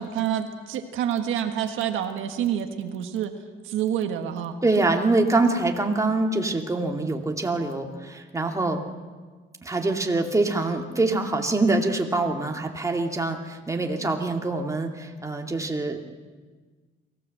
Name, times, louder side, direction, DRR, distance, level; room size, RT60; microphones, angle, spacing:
voice 1, 0.0-3.3 3.6-4.5, right 9 dB, 90° right, 6 dB, 1.6 m, -27 dB
voice 2, 4.6-8.8 9.6-16.1, right 2 dB, 15° right, 2 dB, 2.3 m, -24 dB
23.0 x 16.5 x 7.7 m, 1.4 s
cardioid pair, 90°, 20 cm